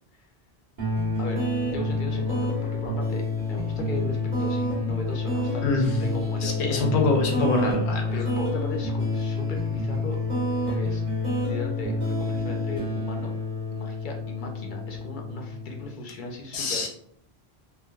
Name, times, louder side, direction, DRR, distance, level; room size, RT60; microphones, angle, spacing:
sound 1, 0.8-15.9, left 2 dB, 45° right, 1.1 m, -28 dB
voice 1, 1.7-6.8 8.1-10.2 10.7-11.0 11.4-13.3 13.7-16.9, left 2 dB, 60° left, 1 dB, 0.6 m, -37 dB
voice 2, 6.4-8.1 16.5-16.9, left 4 dB, 80° left, 1 dB, 0.9 m, -25 dB
3.2 x 2.2 x 2.2 m, 0.67 s
omnidirectional pair, 1.1 m